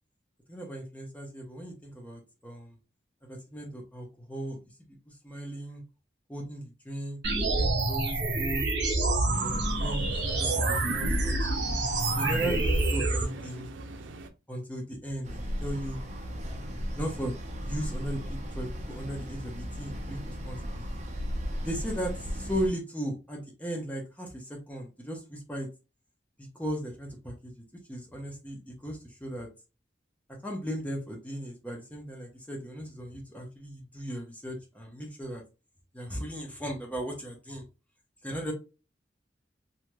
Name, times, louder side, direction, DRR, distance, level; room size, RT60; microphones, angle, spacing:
voice 1, 0.5-2.8 3.2-5.8 6.3-8.7 9.2-11.5 12.1-13.7 14.5-16.0 16.9-20.9 21.6-25.7 26.5-27.6 27.9-29.5 30.3-35.4 35.9-37.6 38.2-38.5, right 1 dB, 10° left, 1 dB, 0.8 m, -37 dB
sound 1, 7.2-13.2, right 2 dB, 70° right, 1.3 m, -27 dB
sound 2, 9.3-14.3, right 2 dB, 90° right, 0.5 m, -44 dB
sound 3, 15.2-22.7, equal, 40° right, 0.6 m, -36 dB
3.1 x 2.8 x 2.2 m, 0.30 s
head